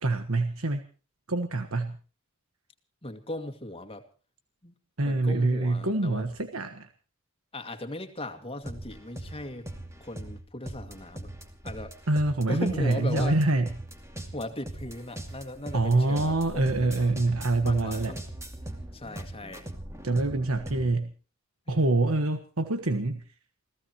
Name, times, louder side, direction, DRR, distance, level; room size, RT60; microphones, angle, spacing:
voice 1, 0.0-0.8 1.3-1.9 5.0-6.9 12.1-13.7 15.7-18.1 20.0-21.1 21.7-23.2, right 2 dB, 80° right, 7 dB, 1.4 m, -25 dB
voice 2, 3.0-4.0 4.6-4.7 5.0-6.3 7.5-9.7 10.0-11.3 11.6-11.9 12.5-13.4 14.3-17.1 17.6-18.2 18.9-19.6 21.7-21.8, left 1 dB, 25° left, 7 dB, 2.2 m, -38 dB
sound 1, 8.6-20.9, right 1 dB, 15° right, 2.5 m, -40 dB
28.5 x 16.0 x 3.0 m, 0.37 s
head